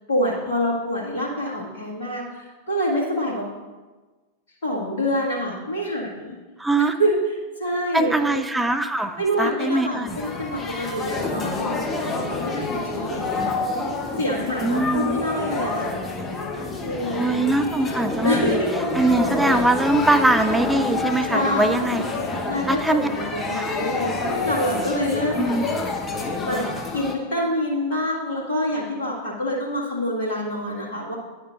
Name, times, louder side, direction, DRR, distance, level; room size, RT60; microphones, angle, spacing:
voice 1, 0.1-3.5 4.6-6.4 7.0-8.5 9.2-13.6 14.2-15.9 16.8-17.5 18.2-19.0 21.3-25.6 26.4-26.7 26.9-31.1, equal, 60° left, -4 dB, 1.8 m, -26 dB
voice 2, 6.6-7.0 7.9-10.2 14.6-15.2 17.1-18.6 18.9-22.0 22.7-23.1 23.5-23.8 25.3-25.6, right 2 dB, 5° right, 8 dB, 0.4 m, -22 dB
sound 1, 10.1-27.1, left 3 dB, 20° left, 0.8 m, -28 dB
10.0 x 6.4 x 2.4 m, 1.3 s
figure-of-eight pair, 90°, 0 cm